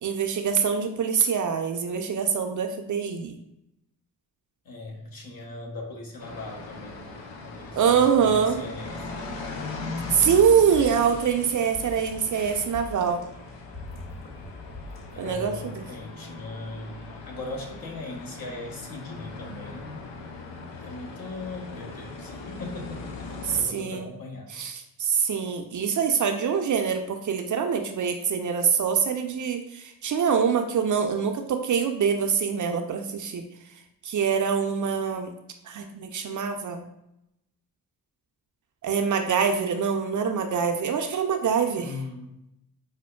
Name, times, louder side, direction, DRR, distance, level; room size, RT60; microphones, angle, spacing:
voice 1, 0.0-3.4 7.7-8.6 10.1-13.2 15.2-15.8 23.4-24.1 24.5-33.5 34.0-35.3 35.6-36.9 38.8-41.9, right 7 dB, 45° right, 5 dB, 0.5 m, -24 dB
voice 2, 4.6-9.1 15.1-17.0 17.3-20.1 20.8-24.5 41.8-42.3, left 2 dB, 55° left, 0 dB, 1.0 m, -39 dB
sound 1, 6.2-23.6, left 3 dB, 80° left, 0.6 m, -39 dB
sound 2, 10.5-15.6, left 2 dB, 30° left, 1.4 m, -43 dB
5.0 x 2.2 x 2.3 m, 0.83 s
supercardioid pair, 45°, 43 cm